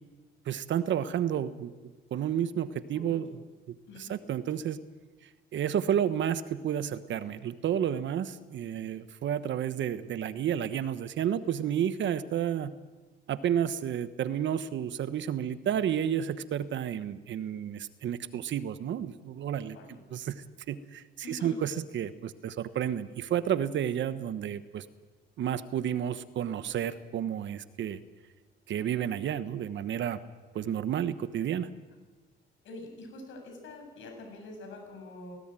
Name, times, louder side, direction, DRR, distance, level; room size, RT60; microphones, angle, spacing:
voice 1, 0.4-1.7 2.1-3.4 3.9-4.8 5.5-12.8 13.3-24.8 25.4-28.0 28.7-30.2 30.5-31.7, right 9 dB, 70° right, 12 dB, 1.3 m, -31 dB
voice 2, 21.2-21.5 32.6-35.4, left 2 dB, 75° left, 3 dB, 7.3 m, -45 dB
18.0 x 18.0 x 9.2 m, 1.3 s
cardioid pair, 90°, 20 cm